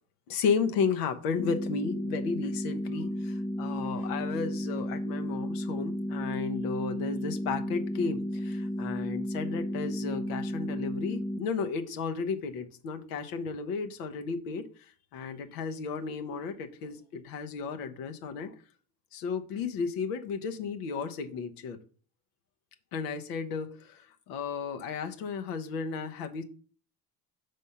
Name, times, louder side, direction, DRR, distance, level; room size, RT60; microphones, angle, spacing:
voice 1, 0.3-14.7 15.1-18.5 19.1-21.8 22.9-26.4, left 5 dB, 80° left, 7 dB, 0.9 m, -33 dB
sound 1, 1.4-11.4, equal, 20° left, 0.4 m, -33 dB
5.3 x 3.4 x 5.6 m, 0.43 s
hypercardioid pair, 75°, 45 cm